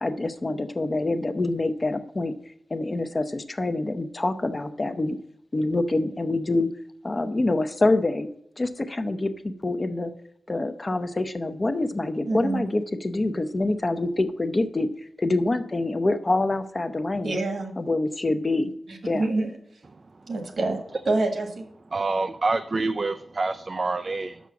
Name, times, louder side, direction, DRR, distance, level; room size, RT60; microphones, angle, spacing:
voice 1, 0.0-2.3 2.7-5.2 5.5-6.7 7.0-8.3 8.6-10.1 10.5-14.9 15.2-17.4 17.8-18.7 19.1-19.2, left 2 dB, 30° left, 8 dB, 0.6 m, -26 dB
voice 2, 12.3-12.6 17.2-17.7 18.9-19.8 20.3-20.8 21.1-21.7, right 2 dB, 75° right, 4 dB, 1.6 m, -27 dB
voice 3, 21.9-24.4, right 3 dB, 40° right, 8 dB, 0.4 m, -27 dB
6.2 x 6.0 x 6.9 m, 0.73 s
wide cardioid pair, 115°, 0 cm